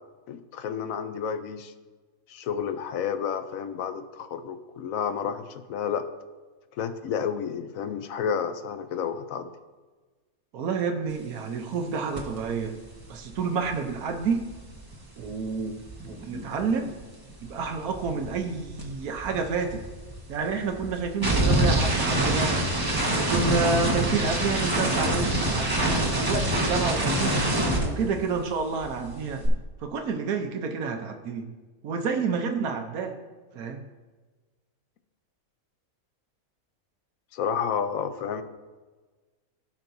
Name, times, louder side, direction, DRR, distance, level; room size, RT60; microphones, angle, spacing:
voice 1, 0.3-1.7 2.3-6.1 6.7-9.5 37.3-38.4, left 7 dB, 70° left, 10 dB, 1.0 m, -30 dB
voice 2, 10.5-12.8 13.1-14.5 15.2-15.8 16.1-16.9 17.4-19.8 20.3-22.7 23.2-31.5 31.8-33.2 33.5-33.8, right 5 dB, 75° right, 4 dB, 1.3 m, -29 dB
sound 1, 12.2-12.4 12.6-17.0 17.3-28.6 28.8-29.5, right 1 dB, 15° right, 1.2 m, -27 dB
16.5 x 5.8 x 2.7 m, 1.3 s
omnidirectional pair, 1.6 m